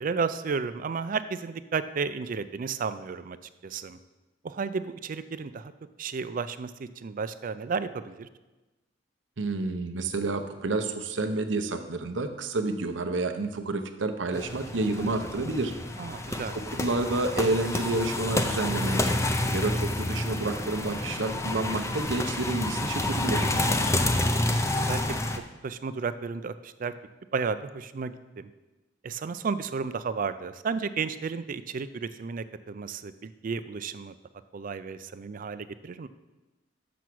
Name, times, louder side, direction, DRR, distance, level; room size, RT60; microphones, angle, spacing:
voice 1, 0.0-3.4 3.6-4.0 4.4-5.7 6.0-8.3 16.0-16.5 23.5-24.0 24.8-25.2 25.6-26.9 27.3-28.5 29.0-34.1 34.5-36.1, right 5 dB, 45° right, 13 dB, 0.4 m, -33 dB
voice 2, 9.4-15.7 16.5-19.1 19.5-23.4, right 2 dB, 85° right, 7 dB, 0.8 m, -29 dB
sound 1, 14.3-25.4, left 1 dB, 15° left, 0.5 m, -29 dB
6.9 x 6.2 x 6.1 m, 1.1 s
head